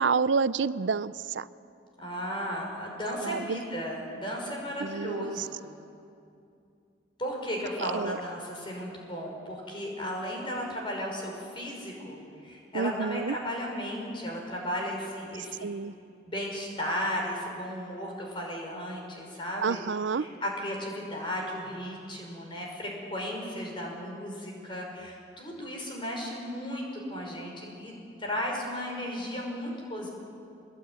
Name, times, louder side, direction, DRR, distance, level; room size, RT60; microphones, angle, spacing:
voice 1, 0.0-1.4 3.2-3.6 4.8-5.4 7.9-8.2 12.7-13.3 15.6-15.9 19.6-20.3, right 5 dB, 80° right, 16 dB, 0.5 m, -28 dB
voice 2, 2.0-5.6 7.2-15.8 16.3-19.8 20.1-27.9 28.2-30.1, equal, 25° left, 0 dB, 5.5 m, -35 dB
23.5 x 20.5 x 9.6 m, 2.6 s
head